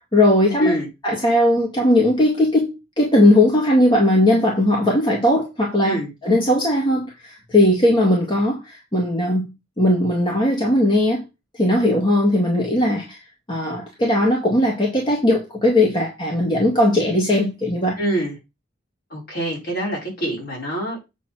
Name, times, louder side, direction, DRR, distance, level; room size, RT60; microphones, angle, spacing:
voice 1, 0.1-0.8 1.0-9.5 9.8-11.2 11.5-13.2 13.5-18.0, left 1 dB, 25° left, 2.0 m, -18 dB
voice 2, 18.0-18.3 19.1-21.0, right 1 dB, 55° left, 5.7 m, -25 dB
8.3 x 4.2 x 6.2 m
head